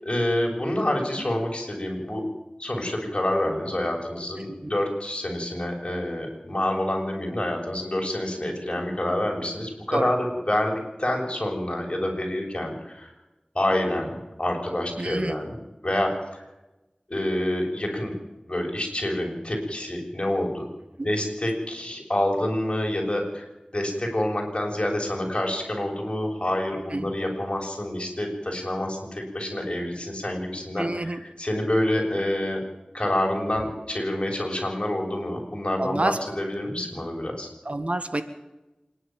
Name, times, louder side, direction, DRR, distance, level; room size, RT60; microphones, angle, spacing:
voice 1, 0.0-2.2 2.6-13.1 13.5-16.5 17.1-18.1 18.5-20.7 21.0-23.5 23.7-32.6 32.9-37.5, left 1 dB, 40° left, 1 dB, 7.0 m, -27 dB
voice 2, 15.0-15.3 21.0-21.1 26.9-27.0 30.8-31.2 35.8-36.2 37.6-38.2, right 2 dB, 55° right, 10 dB, 1.7 m, -27 dB
26.0 x 11.5 x 9.1 m, 1.0 s
wide cardioid pair, 40°, 3 cm